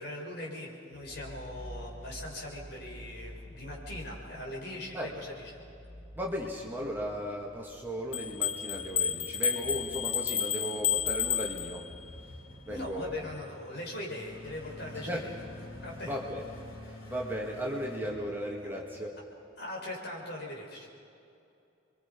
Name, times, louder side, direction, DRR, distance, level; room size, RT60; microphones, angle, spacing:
voice 1, 0.0-5.3 12.7-15.2 15.8-16.2 19.6-20.9, left 1 dB, 55° left, -2 dB, 5.6 m, -40 dB
sound 1, 0.9-19.1, left 1 dB, 80° left, 3.8 m, -48 dB
voice 2, 6.2-11.9 12.6-13.2 15.0-15.3 16.1-16.5 16.8-19.2, equal, 10° right, -2 dB, 2.2 m, -36 dB
sound 2, 8.1-12.1, left 8 dB, 30° left, 0.7 m, -31 dB
29.0 x 23.0 x 5.5 m, 2.6 s
head